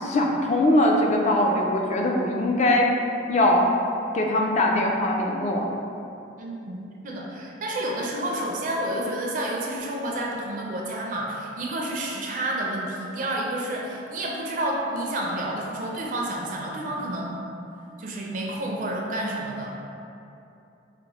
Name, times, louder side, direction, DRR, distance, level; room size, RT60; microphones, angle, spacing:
voice 1, 0.0-2.9 3.3-3.7 4.1-5.7, left 1 dB, 40° left, 1 dB, 0.3 m, -21 dB
voice 2, 6.4-17.4 18.0-19.8, right 1 dB, 45° right, -2 dB, 0.4 m, -30 dB
4.1 x 2.0 x 2.9 m, 2.7 s
head